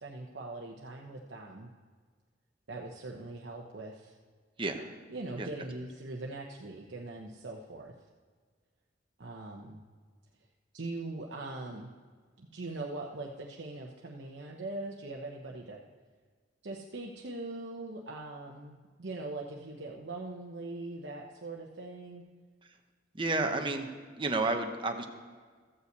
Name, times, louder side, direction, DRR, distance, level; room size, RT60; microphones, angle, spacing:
voice 1, 0.0-1.7 2.7-4.2 5.1-7.9 9.2-9.8 10.7-11.9 12.4-15.8 16.6-22.2 23.4-23.7, right 2 dB, 70° right, -1 dB, 0.9 m, -41 dB
voice 2, 4.6-4.9 5.4-5.5 23.1-23.9 24.2-25.1, right 2 dB, 30° right, 4 dB, 0.9 m, -31 dB
13.5 x 5.6 x 8.0 m, 1.6 s
head